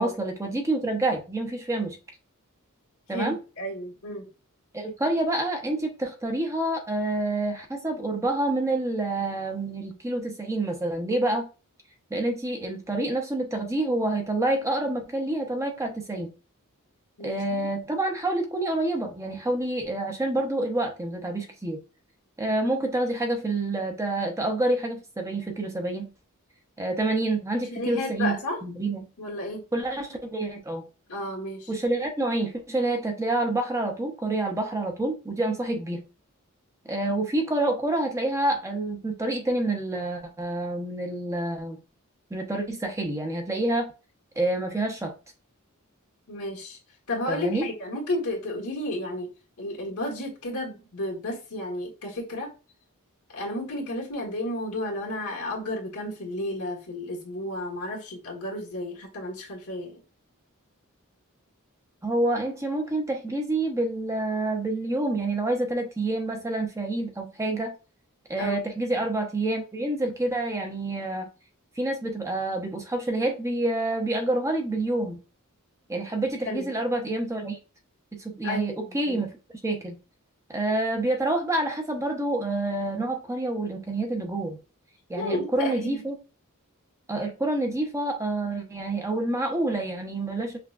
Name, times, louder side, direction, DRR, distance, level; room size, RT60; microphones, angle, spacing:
voice 1, 0.0-2.0 3.1-3.4 4.7-11.5 12.1-16.3 17.2-21.8 22.4-26.1 26.8-29.0 29.7-30.8 31.7-36.0 36.9-41.8 42.3-43.9 44.4-45.1 47.3-47.7 62.0-67.7 68.3-71.3 71.8-75.2 75.9-77.6 78.1-79.3 79.6-80.0 80.5-84.6 85.1-86.2 87.1-90.6, right 2 dB, 15° right, 0.6 m, -28 dB
voice 2, 3.1-4.3 17.2-17.7 22.5-22.6 27.7-28.6 29.2-29.6 31.1-31.7 37.1-37.2 46.3-46.8 47.1-49.3 49.6-52.5 53.3-60.0 68.4-68.6 76.4-76.7 78.4-79.2 85.2-86.0, left 1 dB, 90° left, 1.4 m, -32 dB
5.7 x 2.2 x 2.4 m
head